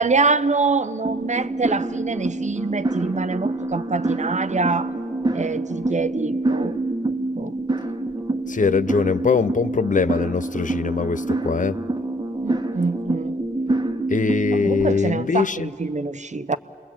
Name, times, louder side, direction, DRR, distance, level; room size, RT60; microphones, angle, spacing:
voice 1, 0.0-4.9 5.3-6.8 7.3-7.5 12.4-13.4 14.5-16.6, right 4 dB, 45° right, 0.9 m, -24 dB
sound 1, 1.0-14.8, right 2 dB, 25° right, 1.3 m, -26 dB
voice 2, 8.5-11.7 14.1-15.7, left 5 dB, 50° left, 0.6 m, -22 dB
28.0 x 21.5 x 8.8 m
wide cardioid pair, 65°, 17 cm